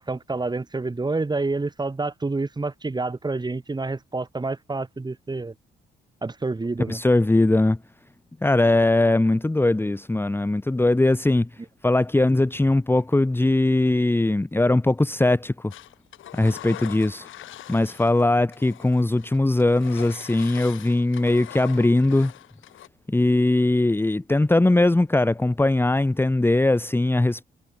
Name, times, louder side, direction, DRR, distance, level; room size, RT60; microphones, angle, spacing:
voice 1, 0.0-5.5 6.2-7.0, right 3 dB, 20° right, 5.4 m, -28 dB
voice 2, 6.9-7.8 8.4-11.5 11.8-15.7 16.3-17.3 17.7-22.3 23.1-27.4, left 2 dB, 10° left, 1.6 m, -20 dB
Engine, 15.7-18.2 18.5-22.9, left 13 dB, 80° left, 6.7 m, -42 dB
cardioid pair, 90°, 20 cm